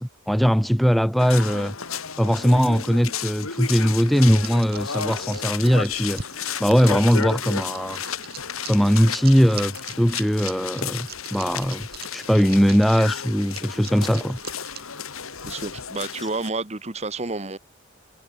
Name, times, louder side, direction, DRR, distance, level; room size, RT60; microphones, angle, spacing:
voice 1, 0.0-1.8 2.2-6.2 6.6-8.0 8.7-14.4, equal, ahead, 0.4 m, -20 dB
sound 1, 1.2-16.5, left 7 dB, 80° left, 2.6 m, -33 dB
sound 2, 4.4-15.0, right 9 dB, 45° right, 1.9 m, -41 dB
voice 2, 15.4-17.6, right 3 dB, 30° right, 1.3 m, -30 dB
head